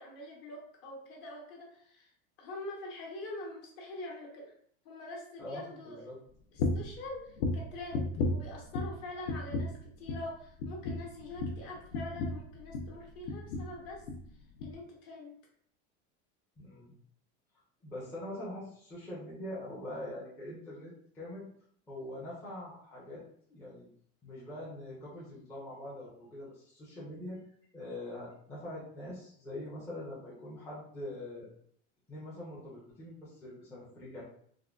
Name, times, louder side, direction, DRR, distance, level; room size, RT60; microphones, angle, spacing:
voice 1, 0.0-2.1 2.4-4.5 4.8-6.1 6.5-14.0 14.6-15.4, left 2 dB, 45° left, -2 dB, 0.9 m, -44 dB
voice 2, 5.4-6.2 16.6-16.9 17.8-21.5 21.9-23.2 23.5-23.9 24.2-27.4 27.7-31.5 32.1-34.2, left 1 dB, 5° left, -8 dB, 0.4 m, -43 dB
sound 1, 6.6-7.0 7.4-9.0 9.3-9.8 10.1-10.3 10.6-13.0 13.3-13.7 14.0-14.3 14.6-14.7, left 2 dB, 70° left, 0.5 m, -34 dB
3.5 x 2.2 x 2.2 m, 0.63 s
supercardioid pair, 165°, 34 cm